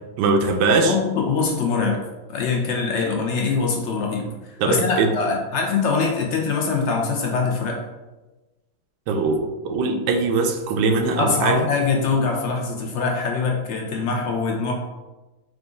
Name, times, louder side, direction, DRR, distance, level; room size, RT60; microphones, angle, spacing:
voice 1, 0.2-0.9 4.6-5.1 9.1-11.7, right 3 dB, 85° right, 5 dB, 1.2 m, -21 dB
voice 2, 0.8-2.0 2.3-7.8 11.2-14.7, left 4 dB, 75° left, 1 dB, 0.6 m, -23 dB
4.8 x 2.4 x 3.6 m, 1.1 s
omnidirectional pair, 1.8 m